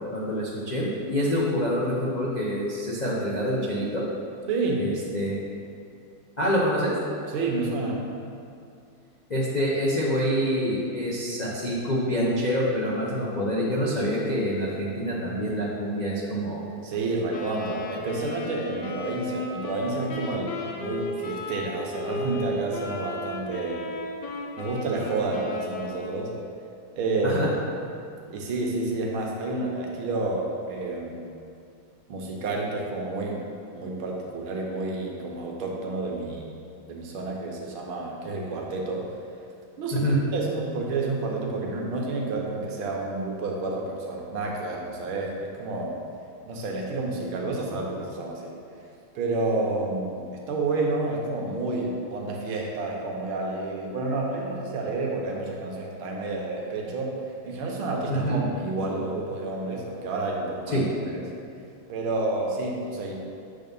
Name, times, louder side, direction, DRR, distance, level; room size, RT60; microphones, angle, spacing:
voice 1, 0.1-4.0 4.8-5.4 6.4-6.9 9.3-16.6 27.2-27.5 39.9-40.2 58.1-58.4 60.7-60.9, equal, 85° left, -6 dB, 0.3 m, -26 dB
voice 2, 4.5-4.9 7.3-8.1 16.8-23.9 24.6-26.3 26.9-27.4 28.3-31.2 32.1-33.4 33.7-36.5 36.9-39.1 39.8-45.3 45.6-46.0 46.4-48.5 49.1-60.9 61.1-61.2 61.9-63.1, right 2 dB, 90° right, -1 dB, 1.8 m, -29 dB
Wind instrument woodwind instrument, 17.3-26.3, left 1 dB, 65° left, 1.2 m, -35 dB
7.6 x 3.8 x 5.3 m, 2.5 s
omnidirectional pair, 2.2 m